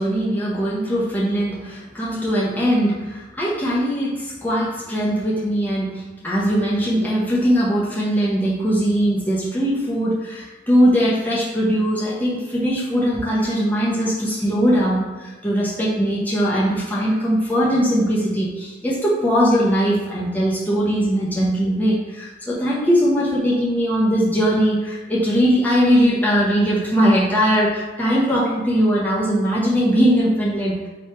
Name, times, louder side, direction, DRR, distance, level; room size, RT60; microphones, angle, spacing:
voice 1, 0.0-30.9, equal, 10° left, -6 dB, 0.8 m, -20 dB
3.2 x 3.1 x 4.4 m, 1.2 s
head